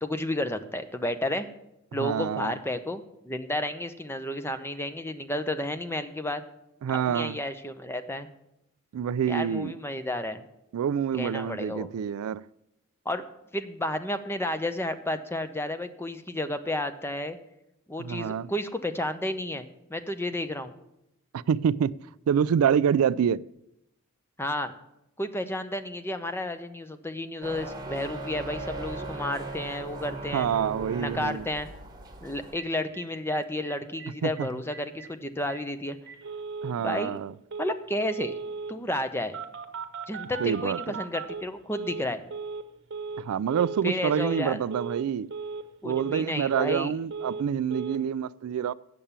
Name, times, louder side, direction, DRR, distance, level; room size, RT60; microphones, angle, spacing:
voice 1, 0.0-1.5 1.9-6.4 7.1-8.3 9.3-10.4 11.2-11.9 13.0-13.2 13.5-17.4 17.9-20.7 24.4-24.7 25.2-30.5 31.0-31.7 32.2-36.0 36.8-37.2 37.6-38.4 38.7-39.4 40.1-42.2 43.8-44.6 45.8-46.9, left 1 dB, 10° left, 0.7 m, -31 dB
voice 2, 2.0-2.5 6.8-7.4 8.9-9.7 10.7-12.4 18.0-18.5 21.3-22.0 22.3-23.4 30.3-31.5 34.2-34.5 36.6-37.3 40.4-40.9 43.2-45.3 45.8-48.7, right 8 dB, 80° right, 0.3 m, -27 dB
sound 1, 27.4-32.5, right 2 dB, 20° right, 1.3 m, -38 dB
Telephone, 32.6-32.7 32.9-33.0 33.3-33.4 33.7-34.1 34.4-34.5 34.7-35.1 35.5-35.6 36.1-36.7 37.5-37.7 38.0-38.7 39.3-42.0 42.3-42.6 42.9-43.2 43.5-43.8 44.1-44.4 44.7-45.0 45.3-45.6 45.9-46.8 47.1-47.4 47.7-48.0, right 4 dB, 55° right, 0.9 m, -37 dB
8.7 x 6.9 x 8.7 m
head